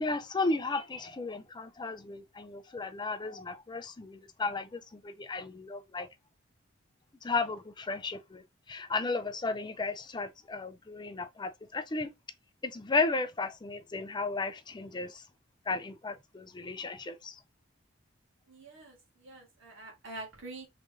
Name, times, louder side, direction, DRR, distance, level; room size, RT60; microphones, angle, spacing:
voice 1, 0.0-6.1 7.2-8.4 8.7-12.1 12.6-15.2 15.7-17.4, left 3 dB, 20° left, 0.5 m, -34 dB
voice 2, 18.5-20.7, right 2 dB, 70° right, 1.9 m, -46 dB
3.8 x 3.4 x 3.7 m
head